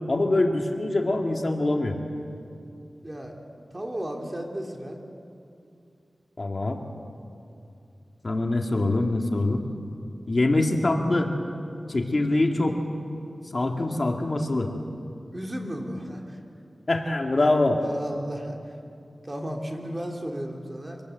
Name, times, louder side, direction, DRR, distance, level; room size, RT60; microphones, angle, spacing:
voice 1, 0.1-2.0 6.4-6.8 8.2-9.7 10.3-11.3 11.9-12.8 13.5-14.7 16.9-17.8, left 2 dB, 45° left, 2 dB, 2.1 m, -24 dB
voice 2, 3.0-3.3 3.7-5.0 15.3-16.4 17.8-18.6 19.2-21.0, equal, 25° right, 1 dB, 3.3 m, -34 dB
25.5 x 19.0 x 8.0 m, 2.5 s
wide cardioid pair, 65°, 0 cm